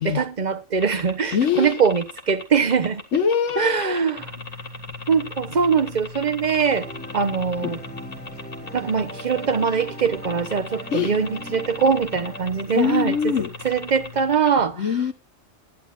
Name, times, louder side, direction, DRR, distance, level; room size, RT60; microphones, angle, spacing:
voice 1, 0.0-3.0 3.6-4.3 5.1-7.8 8.7-13.3 13.6-14.8, right 6 dB, 40° right, 1.1 m, -22 dB
sound 1, 0.8-14.6, left 3 dB, 50° left, 2.0 m, -37 dB
voice 2, 1.3-1.8 3.1-3.9 7.6-7.7 10.9-11.1 12.8-13.5 14.8-15.1, left 7 dB, 75° left, 1.4 m, -23 dB
sound 2, 4.2-14.4, left 3 dB, 15° right, 2.5 m, -42 dB
sound 3, 6.7-13.6, equal, 5° left, 3.7 m, -41 dB
21.0 x 11.0 x 2.5 m
omnidirectional pair, 1.3 m